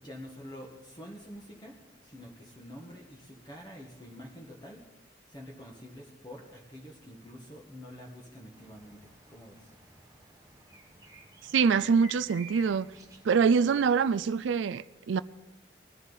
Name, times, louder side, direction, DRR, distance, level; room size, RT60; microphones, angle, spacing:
voice 1, 0.0-1.8 2.0-4.9 5.3-9.7, equal, 25° left, 1.5 m, -47 dB
sound 1, 8.5-14.4, right 1 dB, 20° right, 1.5 m, -52 dB
voice 2, 11.5-12.9 13.2-15.2, right 6 dB, 85° right, 0.4 m, -25 dB
20.5 x 14.0 x 4.1 m
head